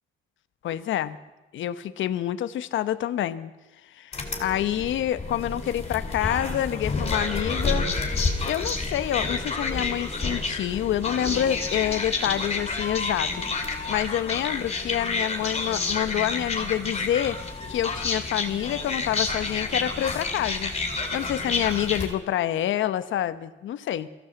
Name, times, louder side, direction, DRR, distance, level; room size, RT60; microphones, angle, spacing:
voice 1, 0.6-1.2 1.5-3.5 3.9-7.9 8.4-17.4 17.7-20.7 21.1-24.1, left 11 dB, 75° left, 12 dB, 1.1 m, -27 dB
sound 1, 4.1-22.1, left 3 dB, 30° left, 4.6 m, -29 dB
23.0 x 16.0 x 8.1 m, 1.1 s
cardioid pair, 90°, 20 cm